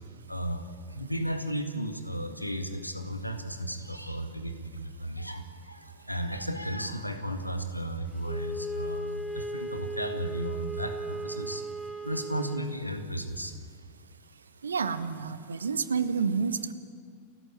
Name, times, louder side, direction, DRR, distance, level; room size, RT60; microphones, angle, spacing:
voice 1, 0.3-11.7 12.0-13.6, right 1 dB, 90° left, 6 dB, 1.9 m, -34 dB
Wind instrument woodwind instrument, 8.2-12.7, right 1 dB, ahead, 1.8 m, -36 dB
voice 2, 14.6-16.7, right 5 dB, 70° right, 12 dB, 1.2 m, -29 dB
29.0 x 15.0 x 8.9 m, 2.1 s
figure-of-eight pair, 90°, 0 cm